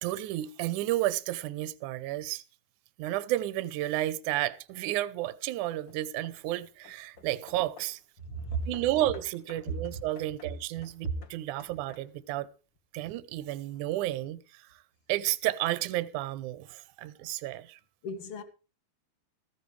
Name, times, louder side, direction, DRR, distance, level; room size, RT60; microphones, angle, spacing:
voice 1, 0.0-2.4 3.0-8.0 8.7-12.5 12.9-14.8 15.1-17.8, right 15 dB, 85° right, 1.7 m, -32 dB
Hammer / Wood, 4.5-5.0 5.6-8.1 8.7-12.4, left 5 dB, 70° left, 1.1 m, -56 dB
voice 2, 8.2-8.7 18.0-18.4, right 2 dB, 50° left, 1.9 m, -34 dB
15.5 x 14.5 x 3.2 m
omnidirectional pair, 4.8 m